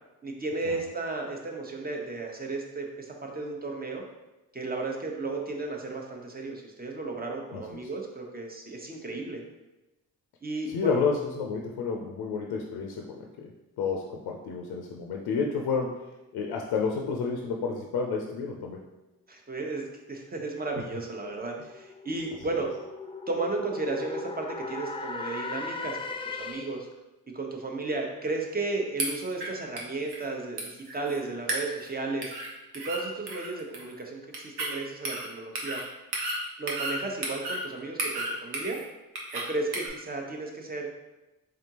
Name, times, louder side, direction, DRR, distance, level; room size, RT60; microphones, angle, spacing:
voice 1, 0.2-4.0 4.5-9.4 10.4-11.0 19.3-22.7 23.3-26.9 27.3-32.3 32.8-35.8 36.6-38.8 39.3-40.9, right 3 dB, 25° right, 1 dB, 0.9 m, -34 dB
voice 2, 10.7-13.5 13.8-16.1 16.3-18.8, left 5 dB, 85° left, 1 dB, 0.5 m, -30 dB
sound 1, 20.9-26.9, left 4 dB, 15° left, 0.4 m, -38 dB
sound 2, 29.0-29.5 29.8-29.9 30.1-30.2 30.6-31.2 31.5-31.9 32.2-32.5 32.7-33.0 33.3-33.9 34.3-34.7 35.0-35.3 35.5-35.8 36.1-37.0 37.2-37.6 38.0-38.8 39.1-39.4 39.7-39.9, right 2 dB, 80° right, 1.0 m, -32 dB
3.7 x 3.5 x 2.9 m, 1.0 s
supercardioid pair, 55°, 38 cm